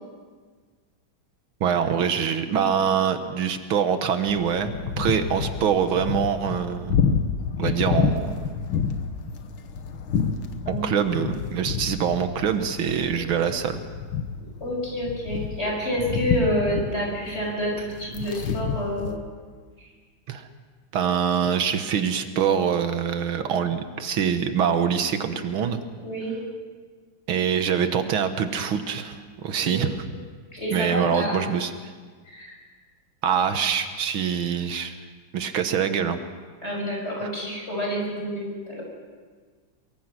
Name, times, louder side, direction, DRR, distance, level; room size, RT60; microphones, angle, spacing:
voice 1, 1.6-7.0 7.6-8.3 10.7-13.8 20.3-20.5 20.9-25.8 27.3-30.0 30.7-31.7 33.2-35.0 35.3-36.2 37.2-37.3, right 7 dB, 85° right, 8 dB, 2.1 m, -24 dB
sound 1, 4.3-19.2, left 6 dB, 85° left, 2.0 m, -29 dB
voice 2, 14.6-19.1 26.0-26.3 29.7-29.8 30.5-31.5 32.2-32.5 36.6-38.8, equal, 30° left, -1 dB, 6.6 m, -28 dB
23.5 x 23.0 x 6.1 m, 1.5 s
omnidirectional pair, 2.2 m